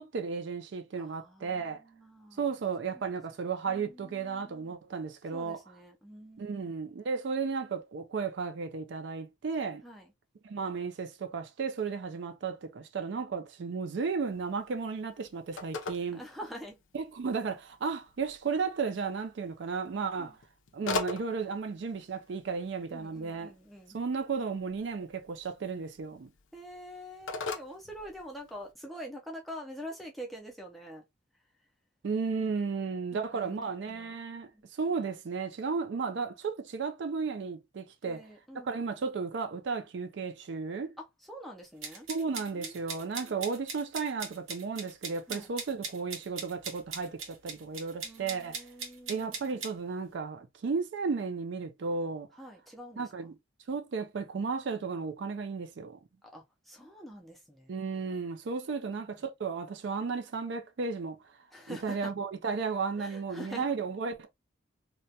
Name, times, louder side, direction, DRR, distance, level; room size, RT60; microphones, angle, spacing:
voice 1, 0.0-1.8 2.4-5.6 6.4-9.8 10.4-16.2 16.9-20.4 20.7-23.5 23.9-26.3 32.0-38.2 38.6-41.0 42.1-48.6 49.1-52.3 53.0-53.3 53.7-56.0 57.7-61.2 61.7-64.3, right 5 dB, 60° right, 0.4 m, -34 dB
voice 2, 0.9-2.5 2.9-3.2 3.6-4.8 5.3-6.6 9.8-10.1 16.1-16.8 20.2-20.4 22.9-24.0 26.5-31.0 33.1-34.7 38.0-38.7 41.0-42.1 42.5-43.4 45.3-45.5 48.0-49.4 52.4-53.3 56.2-57.8 58.7-59.1 61.5-62.1 63.0-63.7, equal, ahead, 0.4 m, -46 dB
Telephone, 14.2-28.7, left 3 dB, 75° left, 0.5 m, -43 dB
sound 1, 41.8-49.7, right 5 dB, 85° right, 0.8 m, -40 dB
2.2 x 2.1 x 2.7 m
head